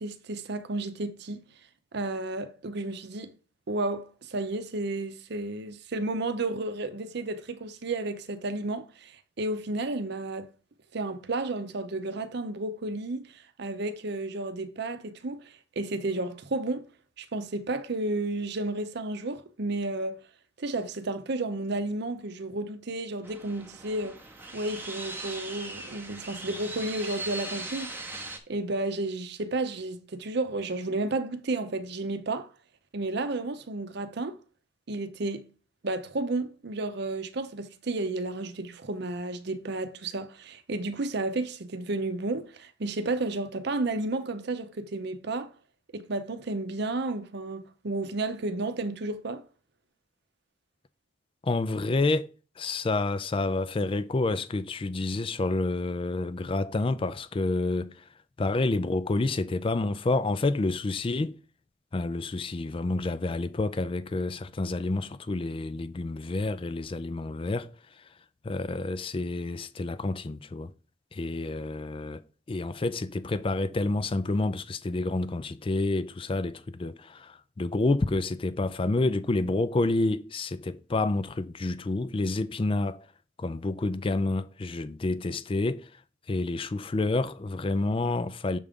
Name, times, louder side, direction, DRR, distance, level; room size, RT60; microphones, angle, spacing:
voice 1, 0.0-1.4 1.9-3.3 3.7-10.5 10.9-16.9 17.2-20.2 20.6-24.2 24.5-27.9 28.5-32.5 32.9-34.4 34.9-35.4 35.8-45.5 45.9-49.4, right 2 dB, 55° right, 0.7 m, -32 dB
sound 1, 23.2-28.4, right 2 dB, 10° right, 0.8 m, -39 dB
voice 2, 51.4-52.3 52.6-58.0 58.4-61.4 61.9-67.7 68.4-70.7 71.1-72.2 72.5-83.1 83.4-86.0 86.3-88.6, left 2 dB, 25° left, 0.4 m, -29 dB
6.7 x 3.7 x 5.2 m
head